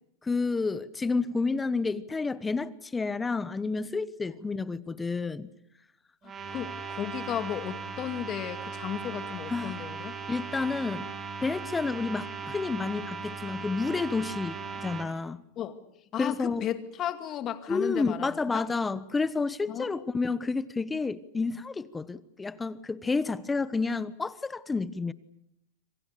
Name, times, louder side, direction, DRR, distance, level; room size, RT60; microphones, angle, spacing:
voice 1, 0.2-5.5 9.5-9.8 10.3-11.1 11.4-15.4 16.2-16.6 17.7-25.1, left 4 dB, 15° left, 1.0 m, -30 dB
sound 1, 6.2-15.1, right 5 dB, 25° right, 3.7 m, -38 dB
voice 2, 6.5-10.2 15.6-15.8 16.1-18.7 19.7-20.1, left 10 dB, 35° left, 2.3 m, -34 dB
26.5 x 26.5 x 6.8 m
hypercardioid pair, 125°, 0 cm